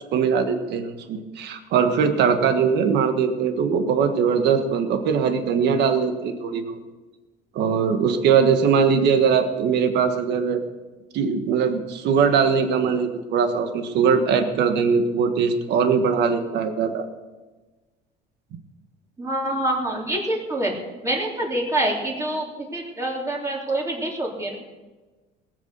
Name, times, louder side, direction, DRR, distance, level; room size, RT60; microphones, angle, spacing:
voice 1, 0.1-6.8 7.5-10.6 11.1-17.1, right 6 dB, 65° right, 8 dB, 1.5 m, -21 dB
voice 2, 19.2-20.7 21.0-24.6, right 1 dB, 15° right, -2 dB, 3.3 m, -26 dB
18.5 x 8.3 x 6.8 m, 1.2 s
cardioid pair, 135°, 19 cm